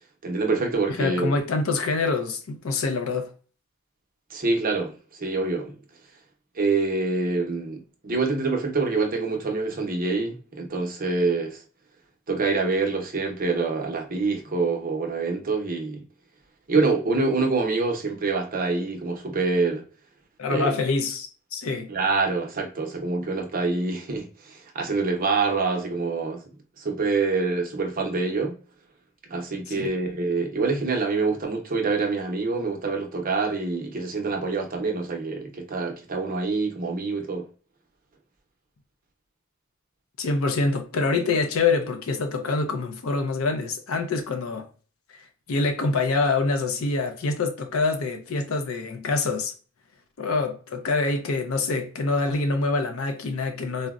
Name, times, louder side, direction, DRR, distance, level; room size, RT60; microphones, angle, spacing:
voice 1, 0.2-1.3 4.3-5.7 6.6-11.6 12.3-16.0 16.7-19.8 20.5-20.7 21.9-26.4 26.8-28.5 29.3-37.4, right 3 dB, 40° right, 0.6 m, -26 dB
voice 2, 1.0-3.3 20.4-21.9 29.8-29.9 40.2-44.7 45.5-49.5 50.2-53.9, left 3 dB, 70° left, 0.5 m, -25 dB
3.9 x 2.0 x 2.3 m
head